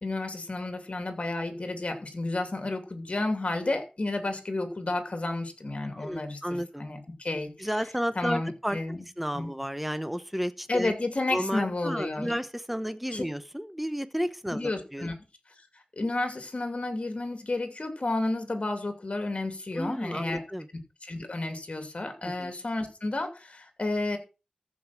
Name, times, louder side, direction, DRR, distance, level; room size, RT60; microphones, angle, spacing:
voice 1, 0.0-7.7 8.1-9.1 9.3-9.5 10.7-12.3 13.1-13.2 14.5-15.2 16.0-20.4 21.0-24.2, left 2 dB, 55° left, 2.8 m, -31 dB
voice 2, 5.9-6.8 7.6-8.8 9.2-10.9 11.3-15.1 19.7-20.7 22.2-22.5, equal, 5° right, 1.0 m, -32 dB
14.5 x 5.5 x 5.9 m
wide cardioid pair, 50°, 2 cm